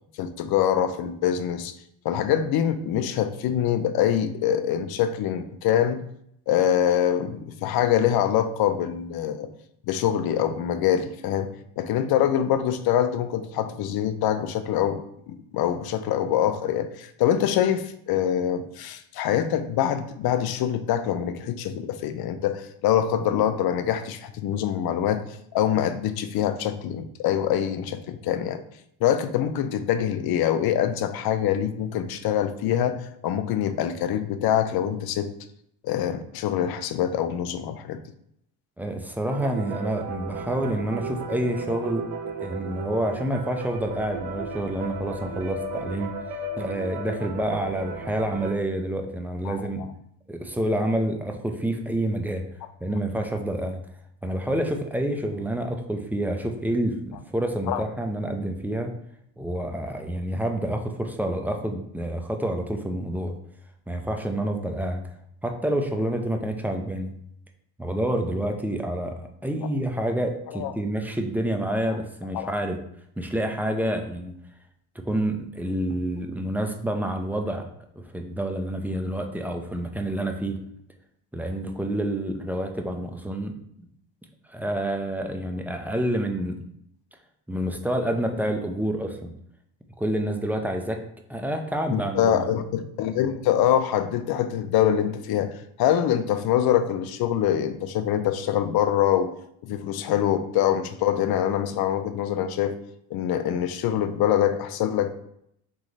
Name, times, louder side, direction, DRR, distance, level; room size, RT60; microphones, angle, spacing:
voice 1, 0.2-1.7 2.0-6.0 6.5-9.5 9.9-15.0 15.3-25.2 25.5-28.6 29.0-35.3 35.8-38.0 49.4-49.6 57.7-57.8 70.5-70.7 71.9-72.0 72.3-72.5 91.9-99.3 99.6-102.7 103.1-105.1, left 10 dB, 60° left, 10 dB, 0.6 m, -24 dB
voice 2, 38.8-42.0 42.4-46.1 46.6-49.8 50.3-52.5 52.8-53.8 54.2-58.9 59.4-63.3 63.9-65.0 65.4-67.1 67.8-72.8 73.2-74.3 75.0-77.7 78.1-80.6 81.3-83.5 84.5-86.6 87.5-89.3 90.0-91.0 91.3-92.5, right 1 dB, 5° right, 4 dB, 0.6 m, -28 dB
sound 1, 39.3-48.5, right 3 dB, 65° right, 0.8 m, -35 dB
3.8 x 3.1 x 3.9 m, 0.73 s
supercardioid pair, 85°, 42 cm